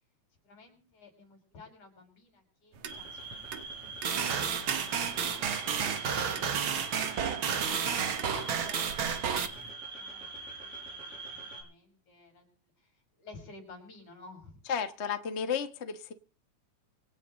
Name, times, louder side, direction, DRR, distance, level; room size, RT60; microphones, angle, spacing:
voice 1, 0.4-6.6 7.0-9.2 9.9-12.5 12.8-14.6, left 3 dB, 80° left, 4 dB, 7.5 m, -53 dB
sound 1, 2.7-9.7, right 8 dB, 70° right, 2.7 m, -45 dB
sound 2, 2.9-11.6, right 3 dB, 20° right, 6.3 m, -44 dB
sound 3, 4.0-9.5, right 7 dB, 50° right, 1.9 m, -31 dB
voice 2, 14.7-16.1, left 7 dB, 35° left, 8 dB, 1.0 m, -33 dB
26.0 x 9.5 x 4.0 m, 0.37 s
omnidirectional pair, 3.3 m